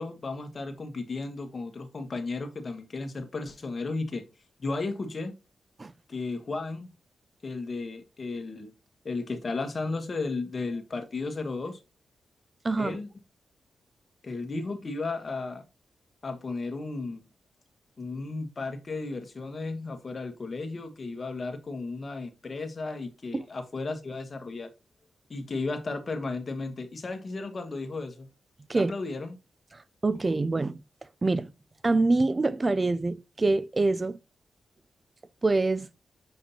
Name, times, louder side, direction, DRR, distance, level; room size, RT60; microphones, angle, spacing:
voice 1, 0.0-4.2 4.6-5.3 6.1-6.9 7.4-8.7 9.0-11.8 12.8-13.1 14.2-15.6 16.2-17.2 18.0-24.7 25.3-28.3 28.7-29.3, left 3 dB, 45° left, 1.5 m, -34 dB
voice 2, 12.6-13.0 23.3-23.4 28.7-28.9 29.7-30.8 31.2-31.5 31.8-34.2 35.4-35.9, right 3 dB, 35° right, 0.4 m, -25 dB
7.0 x 5.0 x 2.7 m
cardioid pair, 65°, 0 cm